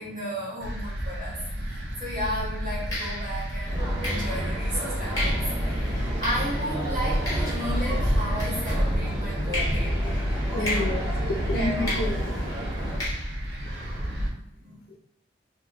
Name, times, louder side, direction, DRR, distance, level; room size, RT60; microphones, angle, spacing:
voice 1, 0.0-9.9 10.6-10.9 11.4-11.9 14.2-14.8, equal, 45° right, -8 dB, 1.4 m, -34 dB
sound 1, 0.6-14.3, equal, 65° right, 0.5 m, -30 dB
sound 2, 1.8-2.0 2.9-9.1 9.5-14.3, left 1 dB, 20° left, 1.1 m, -37 dB
sound 3, 3.7-13.0, equal, 20° right, 0.8 m, -32 dB
voice 2, 10.5-12.2 14.9-15.0, left 1 dB, 55° left, 3 dB, 0.3 m, -30 dB
3.8 x 2.6 x 2.2 m, 0.82 s
head